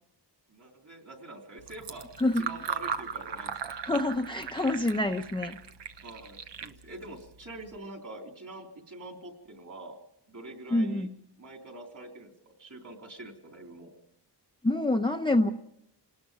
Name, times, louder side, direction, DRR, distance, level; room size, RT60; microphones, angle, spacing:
voice 1, 0.5-2.1 2.4-3.7 6.0-10.0 10.3-11.1 11.4-12.3 12.6-13.9, right 2 dB, 45° right, 3 dB, 3.8 m, -45 dB
Fill (with liquid), 1.6-7.8, right 6 dB, 80° right, 1.1 m, -39 dB
voice 2, 3.8-5.6 10.7-11.1 14.6-15.5, left 1 dB, 10° left, 4 dB, 0.7 m, -26 dB
28.0 x 19.0 x 5.3 m, 0.78 s
wide cardioid pair, 145°, 42 cm